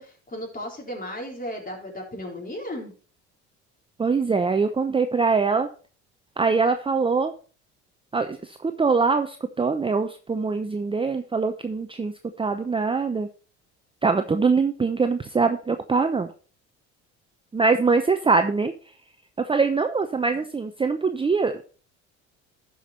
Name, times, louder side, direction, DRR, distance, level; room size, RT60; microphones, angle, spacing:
voice 1, 0.0-2.9 20.3-20.4, left 1 dB, 25° left, 0 dB, 4.0 m, -35 dB
voice 2, 4.0-5.7 6.4-7.3 8.1-13.3 14.0-16.3 17.5-18.7 19.4-21.6, right 4 dB, 15° right, 8 dB, 0.7 m, -23 dB
12.0 x 5.5 x 4.3 m, 0.39 s
hypercardioid pair, 70°, 34 cm